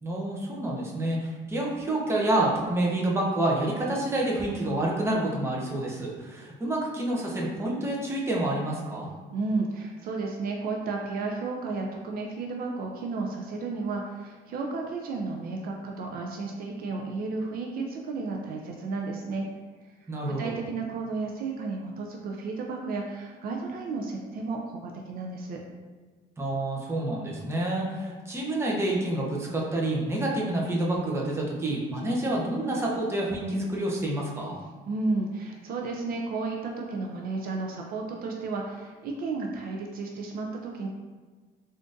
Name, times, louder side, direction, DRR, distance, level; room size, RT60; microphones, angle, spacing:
voice 1, 0.0-9.1 20.1-20.5 26.4-34.6, right 1 dB, 15° right, -3 dB, 0.6 m, -28 dB
voice 2, 9.3-19.5 20.0-25.6 34.9-40.9, right 3 dB, 60° right, 1 dB, 0.4 m, -33 dB
3.6 x 2.5 x 2.5 m, 1.4 s
cardioid pair, 110°, 17 cm